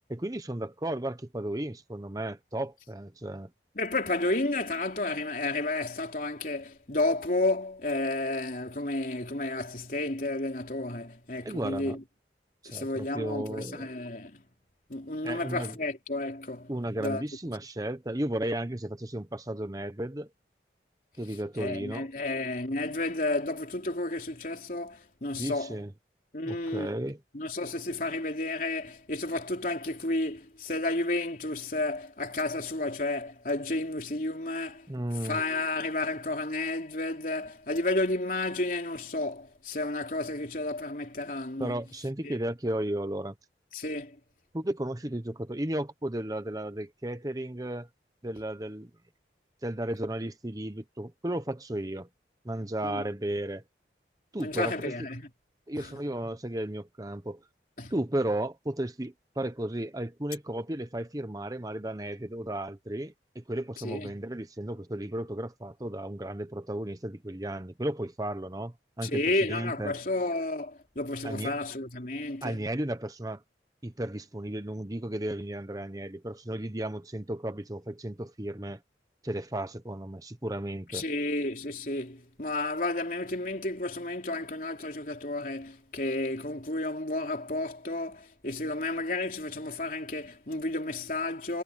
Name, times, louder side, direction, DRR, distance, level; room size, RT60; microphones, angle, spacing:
voice 1, 0.1-3.5 11.4-12.0 12.6-13.9 15.2-15.8 16.7-20.3 21.2-22.1 25.3-25.9 26.4-27.2 34.9-35.4 41.6-43.3 44.5-47.9 48.2-48.9 49.6-52.1 52.4-53.6 54.3-54.7 55.7-57.4 57.9-69.2 69.5-69.9 71.2-71.6 72.4-73.4 73.8-78.8 79.2-81.1, right 1 dB, 20° right, 0.9 m, -34 dB
voice 2, 3.8-12.0 12.7-14.4 14.9-16.7 17.0-17.2 21.6-25.8 26.3-27.0 27.3-34.9 35.2-41.8 42.2-42.3 43.7-44.2 52.8-53.0 54.4-55.3 55.8-55.9 57.8-57.9 63.8-64.1 69.0-72.6 80.9-91.6, left 2 dB, 50° left, 3.5 m, -32 dB
head